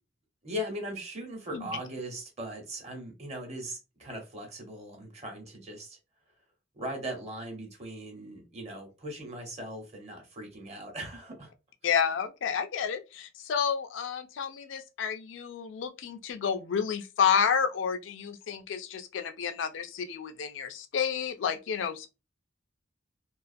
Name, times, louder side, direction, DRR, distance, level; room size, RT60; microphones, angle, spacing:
voice 1, 0.4-6.0 6.7-11.5, equal, 35° right, 0.9 m, -39 dB
voice 2, 11.8-22.1, left 7 dB, 75° left, 0.4 m, -30 dB
2.4 x 2.3 x 2.5 m
head